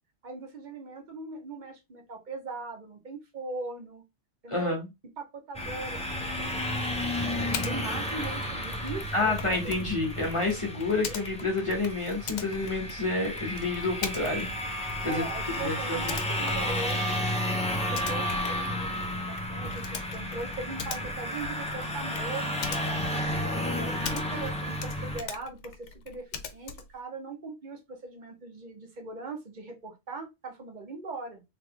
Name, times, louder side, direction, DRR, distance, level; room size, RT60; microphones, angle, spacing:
voice 1, 0.2-4.0 4.4-4.8 5.2-6.6 6.9-9.3 11.1-11.2 15.0-17.2 17.8-23.1 23.8-31.4, right 3 dB, 45° right, 1.1 m, -40 dB
voice 2, 4.5-4.9 9.1-15.3 15.6-16.1, left 3 dB, 30° left, 1.1 m, -29 dB
sound 1, 5.5-25.2, left 1 dB, 10° left, 0.5 m, -32 dB
Typing, 7.5-7.7 8.1-24.5 24.8-27.0, left 6 dB, 90° left, 0.9 m, -41 dB
3.4 x 3.3 x 2.2 m
omnidirectional pair, 1.2 m